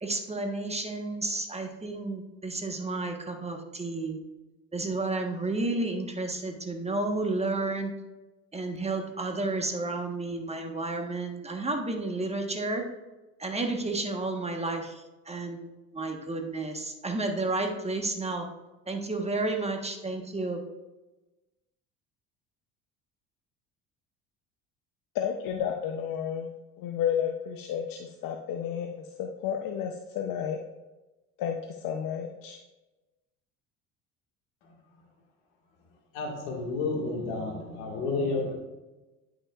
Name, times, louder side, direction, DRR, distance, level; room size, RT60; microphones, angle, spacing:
voice 1, 0.0-4.2 4.7-7.9 8.5-12.8 13.4-18.5 18.9-20.6, right 2 dB, 15° right, 3 dB, 1.2 m, -31 dB
voice 2, 25.1-26.5 26.8-30.6 31.4-32.6, left 8 dB, 60° left, 3 dB, 0.8 m, -32 dB
voice 3, 36.1-38.5, left 3 dB, 80° left, 0 dB, 1.9 m, -31 dB
10.5 x 5.9 x 2.4 m, 1.1 s
hypercardioid pair, 70°, 37 cm